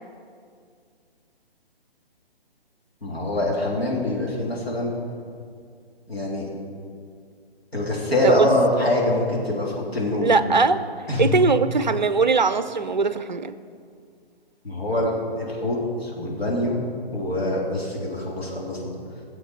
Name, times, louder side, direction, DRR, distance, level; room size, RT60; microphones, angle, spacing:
voice 1, 3.0-4.9 6.1-6.5 7.7-10.4 11.1-11.4 14.6-16.8 17.1-18.8, left 1 dB, 75° left, -4 dB, 3.6 m, -24 dB
voice 2, 10.2-10.8 11.2-13.6, right 4 dB, 45° right, 13 dB, 0.5 m, -20 dB
15.0 x 7.8 x 5.9 m, 2.2 s
figure-of-eight pair, 140°, 31 cm